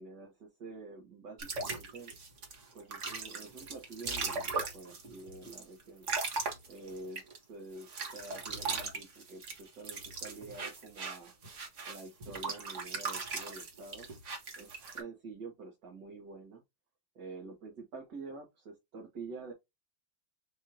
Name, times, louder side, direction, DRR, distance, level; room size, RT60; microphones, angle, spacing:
voice 1, 0.0-2.1 2.7-6.1 6.7-11.3 11.9-14.1 14.6-16.6 17.1-19.5, right 3 dB, 60° right, 2.1 m, -48 dB
Washing and scrubbing, 1.4-7.4 7.8-15.0, right 4 dB, 40° right, 1.4 m, -38 dB
6.4 x 2.7 x 2.8 m
omnidirectional pair, 2.2 m